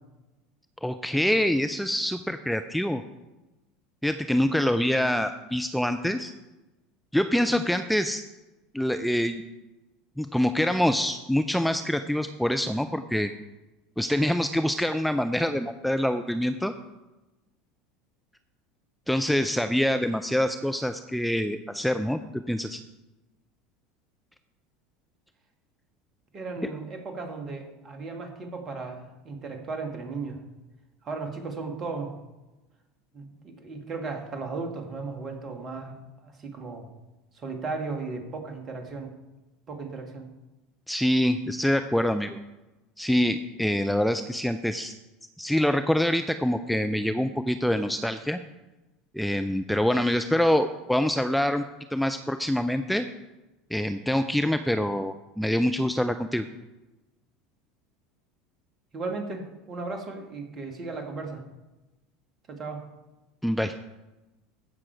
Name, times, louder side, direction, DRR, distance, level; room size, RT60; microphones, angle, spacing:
voice 1, 0.8-3.0 4.0-6.3 7.1-8.2 8.7-9.4 10.2-13.3 14.0-16.7 19.1-22.8 40.9-42.4 43.0-44.9 45.4-48.4 49.1-51.6 51.9-53.1 53.7-56.4 63.4-63.7, equal, ahead, 8 dB, 0.5 m, -25 dB
voice 2, 26.3-30.4 31.0-32.2 33.1-36.9 37.3-39.1 39.7-40.3 58.9-61.4 62.5-62.9, right 3 dB, 35° right, 4 dB, 2.2 m, -36 dB
15.5 x 6.2 x 4.8 m, 1.1 s
figure-of-eight pair, 75°, 0 cm